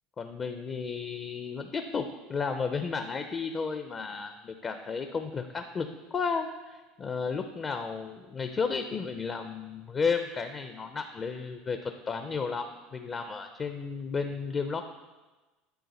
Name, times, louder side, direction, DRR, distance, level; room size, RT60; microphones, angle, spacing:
voice 1, 0.2-14.8, left 5 dB, 30° left, 7 dB, 0.4 m, -33 dB
9.4 x 3.6 x 4.1 m, 1.2 s
supercardioid pair, 110°, 0 cm